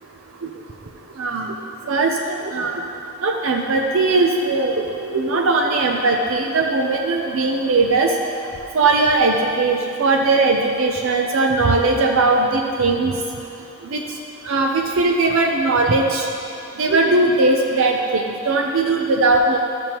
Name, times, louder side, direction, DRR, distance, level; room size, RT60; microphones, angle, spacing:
voice 1, 1.2-1.5 1.9-2.1 2.5-2.7 3.2-8.1 8.7-13.1 13.9-14.0 14.5-16.3 16.8-19.6, right 3 dB, 65° right, 1 dB, 0.5 m, -19 dB
12.5 x 6.9 x 2.9 m, 2.8 s
head